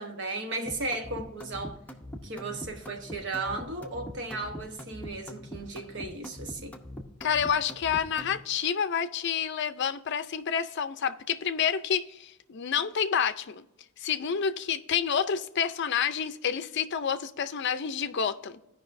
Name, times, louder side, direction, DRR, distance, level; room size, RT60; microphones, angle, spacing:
voice 1, 0.0-1.8 2.2-6.8, right 2 dB, 55° right, 1.1 m, -35 dB
sound 1, 0.7-8.4, equal, 5° left, 0.7 m, -42 dB
voice 2, 7.2-13.6 14.0-18.6, left 7 dB, 55° left, 0.5 m, -29 dB
15.5 x 5.4 x 2.6 m
head